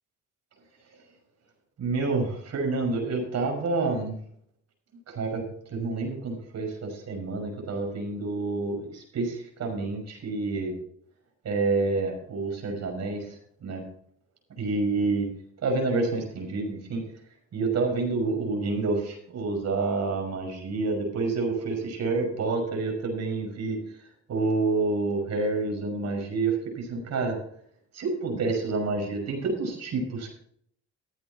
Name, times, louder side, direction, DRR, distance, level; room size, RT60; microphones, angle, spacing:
voice 1, 1.8-4.1 5.1-5.4 5.7-10.7 11.4-13.3 13.6-13.8 14.6-15.3 15.6-17.0 17.5-23.8 24.3-27.4 27.9-30.3, right 3 dB, 60° right, 3 dB, 5.9 m, -28 dB
14.5 x 8.6 x 4.3 m, 0.63 s
cardioid pair, 90°, 30 cm